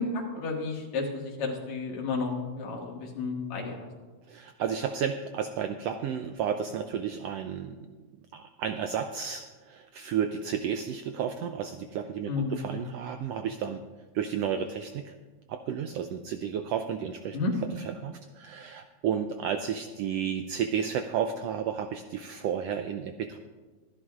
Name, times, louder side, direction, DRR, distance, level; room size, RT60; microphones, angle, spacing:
voice 1, 0.0-3.9 12.3-12.6 17.3-17.5, left 3 dB, 70° left, 0 dB, 3.0 m, -32 dB
voice 2, 4.3-7.8 8.3-13.8 14.1-15.1 15.5-17.4 17.8-23.4, right 8 dB, 85° right, 7 dB, 1.4 m, -32 dB
24.5 x 11.0 x 2.4 m, 1.3 s
omnidirectional pair, 3.4 m